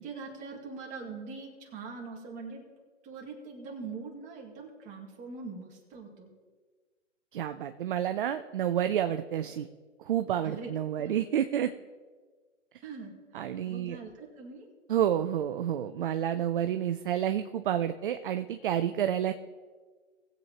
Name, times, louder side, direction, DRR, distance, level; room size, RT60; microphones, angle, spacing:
voice 1, 0.0-2.6 3.0-6.3 10.4-11.2 12.8-13.1 13.4-14.7, right 4 dB, 20° right, -1 dB, 2.2 m, -42 dB
voice 2, 7.3-9.7 10.0-11.7 13.3-14.0 14.9-19.3, right 10 dB, 45° right, 9 dB, 0.5 m, -29 dB
19.5 x 8.0 x 2.9 m, 1.4 s
hypercardioid pair, 145°, 38 cm